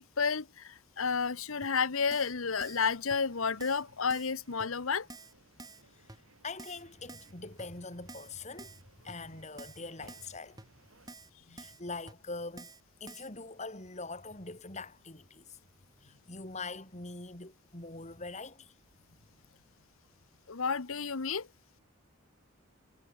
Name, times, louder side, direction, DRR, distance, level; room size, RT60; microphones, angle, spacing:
voice 1, 0.0-5.1 20.5-21.5, left 5 dB, 85° left, 1.1 m, -31 dB
Keyboard (musical), 1.6-1.7 2.1-2.3 2.6-2.8 3.1-3.2 3.6-3.8 4.1-4.3 4.6-4.7 5.1-5.3 5.6-5.8 6.1-6.2 6.6-6.8 7.1-7.3 7.6-7.7 8.1-8.3 8.6-8.8 9.1-9.2 9.6-9.8 10.1-10.3 10.6-10.7 11.1-11.3 11.6-11.8 12.1-12.2 12.6-12.8 13.1-13.3, right 3 dB, 20° right, 7.6 m, -49 dB
sound 1, 2.1-11.2, right 2 dB, 90° right, 6.7 m, -63 dB
voice 2, 6.4-10.6 11.5-12.7 13.0-15.6 16.0-18.7, left 3 dB, 35° left, 3.3 m, -43 dB
head